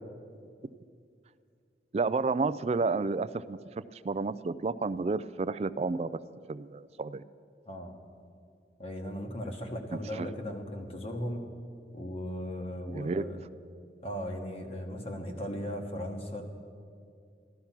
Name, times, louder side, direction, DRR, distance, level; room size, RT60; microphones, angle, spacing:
voice 1, 1.9-3.6 3.9-6.1 6.5-7.2 10.2-10.3 12.9-13.3, right 3 dB, 35° right, 16 dB, 0.3 m, -30 dB
voice 2, 8.8-11.4 11.9-13.4 14.0-16.4, equal, 35° left, 2 dB, 1.3 m, -37 dB
14.0 x 13.0 x 5.9 m, 2.3 s
head